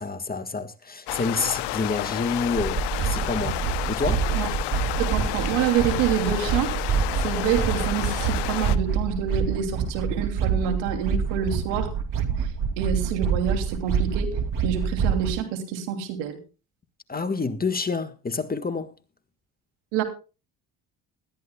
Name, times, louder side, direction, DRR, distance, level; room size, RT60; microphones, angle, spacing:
voice 1, 0.0-3.6 3.9-4.3 17.1-18.9, left 4 dB, 20° left, 1.7 m, -28 dB
sound 1, 1.1-8.8, left 16 dB, 70° left, 1.0 m, -31 dB
sound 2, 2.5-15.3, right 6 dB, 50° right, 2.7 m, -26 dB
voice 2, 5.0-6.8 7.2-11.9 12.8-16.4 19.9-20.0, right 8 dB, 85° right, 3.0 m, -27 dB
20.5 x 13.0 x 2.3 m
supercardioid pair, 75°, 42 cm